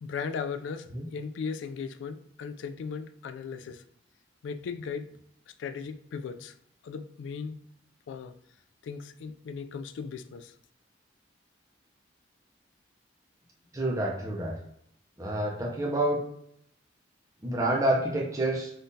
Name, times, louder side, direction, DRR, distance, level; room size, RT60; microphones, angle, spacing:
voice 1, 0.0-3.8 4.4-5.1 5.6-6.6 6.8-7.6 8.1-8.4 8.8-10.5, left 5 dB, 80° left, 9 dB, 0.3 m, -37 dB
voice 2, 13.7-14.5 15.2-16.2 17.4-18.7, right 1 dB, 20° right, -2 dB, 0.6 m, -28 dB
3.6 x 2.4 x 2.6 m, 0.70 s
head